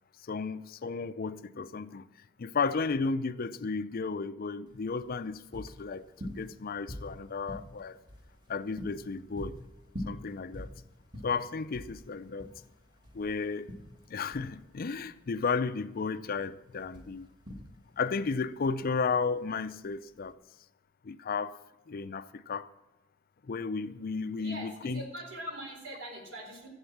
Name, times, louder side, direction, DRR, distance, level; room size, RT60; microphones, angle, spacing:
voice 1, 0.2-2.1 2.4-8.0 8.5-9.6 10.1-10.7 11.2-12.5 13.1-13.8 14.1-17.3 18.0-20.4 21.0-21.6 21.9-22.7 23.4-25.0, left 4 dB, 50° left, 0.5 m, -33 dB
sound 1, 4.7-20.3, equal, 25° right, 1.7 m, -46 dB
voice 2, 24.4-26.7, right 2 dB, 70° right, 4.0 m, -43 dB
15.0 x 8.0 x 7.2 m
head